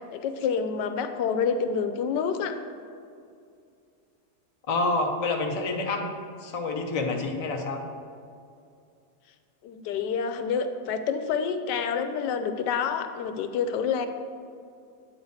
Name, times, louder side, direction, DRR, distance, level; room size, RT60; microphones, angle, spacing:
voice 1, 0.1-2.6 9.6-14.1, left 6 dB, 85° left, 8 dB, 1.2 m, -28 dB
voice 2, 4.7-6.1 6.4-7.8, left 3 dB, 55° left, 2 dB, 0.4 m, -28 dB
8.9 x 4.0 x 6.4 m, 2.4 s
omnidirectional pair, 1.8 m